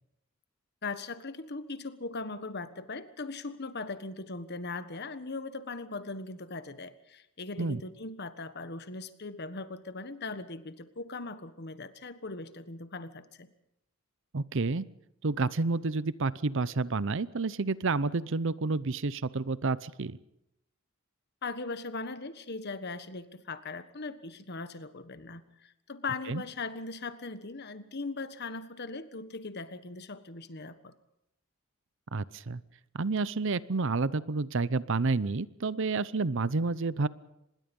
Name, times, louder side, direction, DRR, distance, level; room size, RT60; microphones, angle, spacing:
voice 1, 0.8-13.5 21.4-30.9, left 3 dB, 50° left, 12 dB, 1.4 m, -39 dB
voice 2, 14.3-14.9 15.2-20.2 26.3-26.4 32.1-32.6 32.9-37.1, right 3 dB, 60° right, 18 dB, 0.7 m, -29 dB
25.5 x 21.0 x 5.4 m, 0.83 s
head